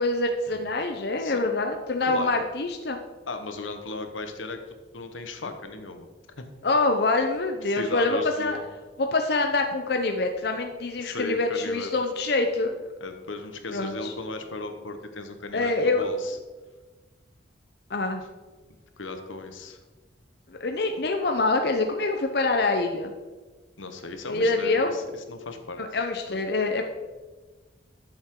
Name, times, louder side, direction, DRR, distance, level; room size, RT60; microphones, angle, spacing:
voice 1, 0.0-3.0 6.6-8.6 9.0-12.8 13.7-14.1 15.5-16.0 17.9-18.2 20.6-23.1 24.3-25.0 25.8-26.8, left 3 dB, 55° left, 4 dB, 0.7 m, -25 dB
voice 2, 3.3-4.6 4.9-6.1 6.4-6.5 7.7-8.6 11.0-11.9 13.0-16.4 19.0-19.8 23.8-25.8 26.3-26.4 26.8-26.9, left 3 dB, 90° left, 6 dB, 1.2 m, -36 dB
12.5 x 7.3 x 3.8 m, 1.3 s
head